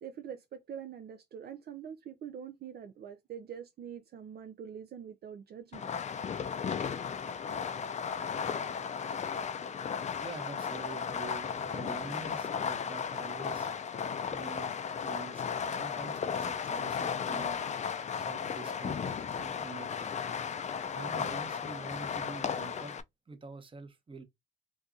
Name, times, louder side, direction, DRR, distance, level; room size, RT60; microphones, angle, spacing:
voice 1, 0.0-5.9, right 8 dB, 55° right, 0.5 m, -44 dB
Fireworks, 5.7-23.0, left 6 dB, 35° left, 0.4 m, -35 dB
voice 2, 10.2-13.7 14.3-14.7 15.0-17.6 18.1-20.2 20.9-22.9 23.3-24.2, right 4 dB, 25° right, 0.9 m, -46 dB
2.7 x 2.3 x 3.7 m
cardioid pair, 90°, 20 cm